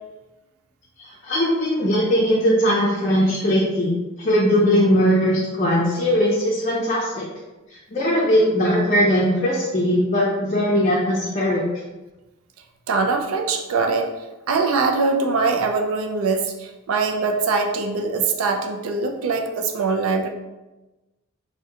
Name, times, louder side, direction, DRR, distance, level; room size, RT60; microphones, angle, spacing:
voice 1, 1.0-7.3 7.7-11.7, equal, 35° left, -5 dB, 0.4 m, -20 dB
voice 2, 12.9-14.1 14.5-20.3, right 4 dB, 80° right, 4 dB, 0.4 m, -22 dB
2.7 x 2.2 x 3.6 m, 1.1 s
head